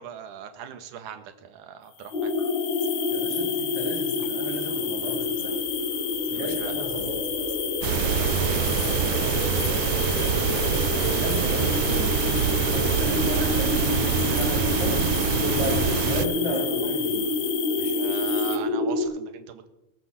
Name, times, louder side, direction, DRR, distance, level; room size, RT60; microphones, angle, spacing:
voice 1, 0.0-2.3 6.3-6.9 7.8-8.7 12.8-13.9 17.7-19.7, right 8 dB, 65° right, 7 dB, 2.7 m, -41 dB
sound 1, 2.0-18.6, left 8 dB, 60° left, 1.5 m, -32 dB
sound 2, 2.1-19.0, left 2 dB, 25° left, 7.3 m, -29 dB
voice 2, 3.1-5.5 6.3-7.1 10.3-12.1 12.7-15.1 15.4-17.2, equal, 30° right, -4 dB, 4.5 m, -33 dB
sound 3, 7.8-16.3, right 10 dB, 85° right, 1.6 m, -25 dB
20.0 x 9.4 x 7.5 m, 0.94 s
omnidirectional pair, 4.3 m